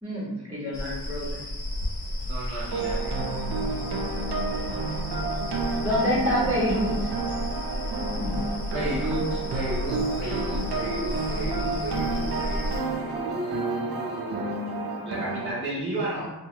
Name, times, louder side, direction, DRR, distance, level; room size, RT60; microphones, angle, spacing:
voice 1, 0.0-1.4 5.8-7.1 8.2-8.4, left 1 dB, 10° right, -12 dB, 1.4 m, -27 dB
sound 1, 0.7-12.8, left 1 dB, 60° left, 0.9 m, -33 dB
voice 2, 2.2-3.1 8.7-14.5 15.0-16.3, right 1 dB, 30° right, -8 dB, 0.8 m, -33 dB
sound 2, 2.7-15.5, right 3 dB, 75° right, 0.5 m, -31 dB
2.7 x 2.4 x 2.8 m, 0.97 s
wide cardioid pair, 100°, 40 cm